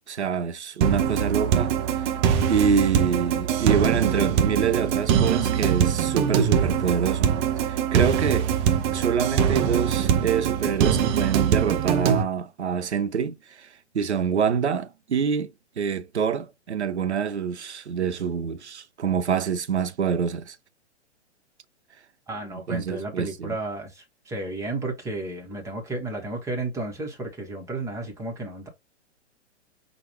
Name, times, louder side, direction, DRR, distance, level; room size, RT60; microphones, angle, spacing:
voice 1, 0.1-2.1 2.4-7.3 7.6-8.5 8.9-13.7 13.9-20.6 22.5-23.6, right 7 dB, 70° right, 0.7 m, -26 dB
sound 1, 0.8-12.2, right 8 dB, 25° right, 0.6 m, -23 dB
voice 2, 22.3-28.7, right 2 dB, 10° right, 1.2 m, -33 dB
5.9 x 2.5 x 3.0 m
figure-of-eight pair, 115°, 35 cm